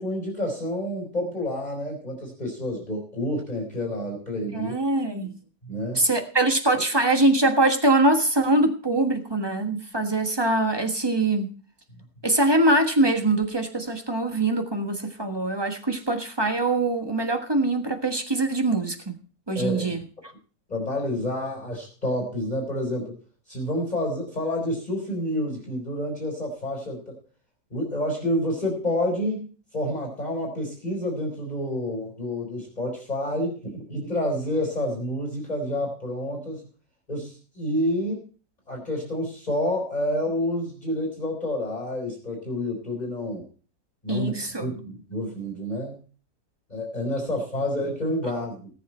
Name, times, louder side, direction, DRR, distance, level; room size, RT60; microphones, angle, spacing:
voice 1, 0.0-4.8 5.6-6.0 19.5-20.0 20.7-23.1 23.5-27.1 27.7-29.4 29.7-36.6 37.1-38.3 38.7-43.5 44.0-44.3 44.6-46.0 46.7-48.7, left 1 dB, 25° left, -1 dB, 4.2 m, -29 dB
voice 2, 4.5-5.3 5.9-11.5 12.2-19.1 19.5-20.0 44.1-44.7, right 2 dB, 15° right, 5 dB, 1.3 m, -23 dB
18.5 x 7.4 x 4.4 m, 0.40 s
omnidirectional pair, 1.7 m